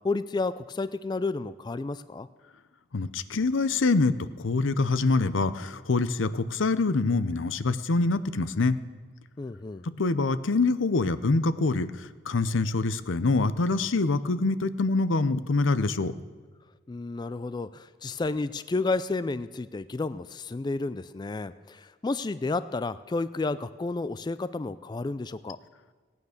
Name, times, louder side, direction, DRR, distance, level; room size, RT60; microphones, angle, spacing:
voice 1, 0.0-2.3 9.4-9.8 16.9-25.6, left 3 dB, 20° left, 14 dB, 0.3 m, -31 dB
voice 2, 2.9-4.1 4.4-8.7 9.8-16.1, left 3 dB, 85° left, 14 dB, 0.7 m, -25 dB
17.0 x 9.4 x 6.5 m, 1.5 s
head